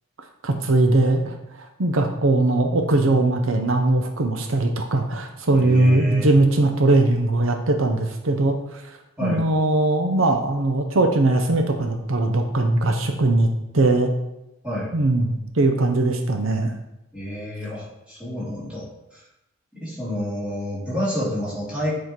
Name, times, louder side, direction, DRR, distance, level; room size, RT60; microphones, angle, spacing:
voice 1, 0.4-8.8 9.2-14.1 14.9-16.7, right 2 dB, 80° right, 4 dB, 0.8 m, -20 dB
voice 2, 5.5-6.3 9.2-9.4 14.6-14.9 17.1-19.2 19.7-21.9, equal, 5° right, -9 dB, 3.0 m, -29 dB
8.1 x 4.8 x 4.5 m, 0.89 s
head